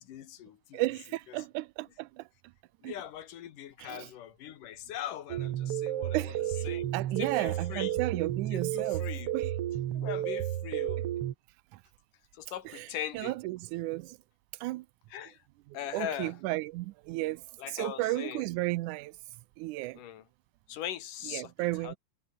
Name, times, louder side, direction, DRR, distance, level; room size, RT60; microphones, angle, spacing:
voice 1, 0.0-0.8 1.3-1.4 2.8-6.9 7.2-8.0 8.5-9.3 9.9-11.0 12.3-13.4 15.1-15.4 15.7-16.4 17.6-18.5 19.9-20.3 20.7-21.5 21.8-22.0, left 11 dB, 90° left, 3.2 m, -41 dB
voice 2, 0.7-2.2 2.8-2.9 3.8-4.1 6.1-6.7 6.9-9.0 9.3-9.5 12.8-12.9 13.1-14.2 14.6-14.9 15.9-17.4 17.7-19.1 19.6-20.0 21.3-22.0, right 19 dB, 80° right, 2.0 m, -33 dB
sound 1, 5.3-11.3, right 12 dB, 60° right, 1.7 m, -32 dB
omnidirectional pair, 3.6 m